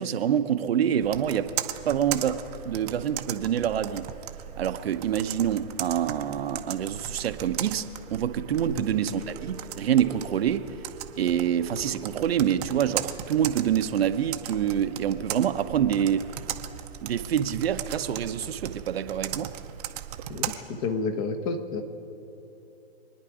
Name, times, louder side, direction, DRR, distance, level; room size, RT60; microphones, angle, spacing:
voice 1, 0.0-1.5 1.9-4.1 4.6-10.7 11.2-16.3 17.0-19.5, right 9 dB, 65° right, 9 dB, 0.9 m, -26 dB
Computer keyboard, 1.0-20.6, right 12 dB, 35° right, 0.8 m, -37 dB
sound 1, 9.2-18.1 18.7-18.8, equal, 65° left, 3.6 m, -51 dB
voice 2, 20.3-21.8, left 4 dB, 35° left, 8 dB, 1.3 m, -31 dB
26.0 x 10.0 x 4.9 m, 2.9 s
hypercardioid pair, 140°, 33 cm